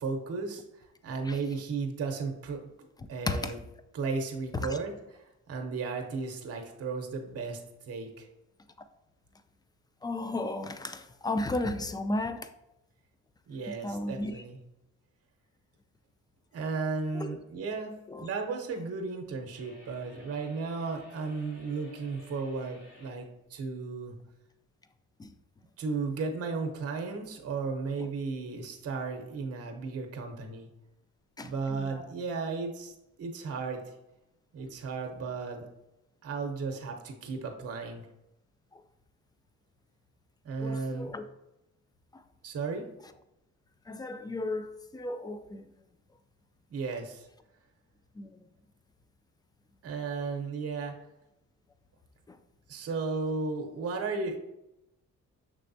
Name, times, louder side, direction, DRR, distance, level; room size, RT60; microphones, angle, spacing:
voice 1, 0.0-2.6 3.1-3.6 3.9-4.9 5.5-8.3 13.5-14.6 16.5-17.9 18.2-24.1 25.8-30.7 31.4-33.9 34.5-35.7 36.2-38.1 40.4-41.1 42.4-42.8 46.7-47.3 49.8-50.9 52.7-54.4, right 4 dB, 50° right, 0.8 m, -34 dB
voice 2, 10.0-12.5 13.8-14.4 17.1-17.3 18.1-18.3 25.2-25.3 31.4-31.5 31.8-32.1 38.7-38.8 40.6-41.3 42.1-42.2 43.9-45.7 48.2-48.3 52.3-52.4, left 2 dB, 15° left, 0.3 m, -34 dB
sound 1, 19.5-23.2, left 2 dB, 85° left, 1.7 m, -54 dB
6.1 x 3.3 x 2.6 m
cardioid pair, 90°, 30 cm